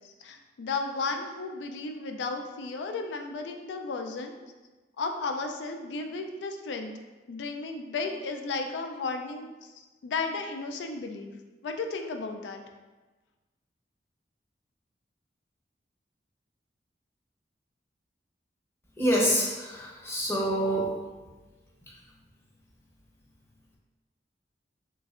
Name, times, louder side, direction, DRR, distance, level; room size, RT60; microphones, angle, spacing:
voice 1, 0.2-4.3 5.0-6.9 7.3-9.7 10.0-11.3 11.6-12.6, left 3 dB, 85° left, 5 dB, 0.3 m, -34 dB
voice 2, 19.0-20.9, equal, 15° left, -4 dB, 0.6 m, -26 dB
3.4 x 3.1 x 2.4 m, 1.2 s
head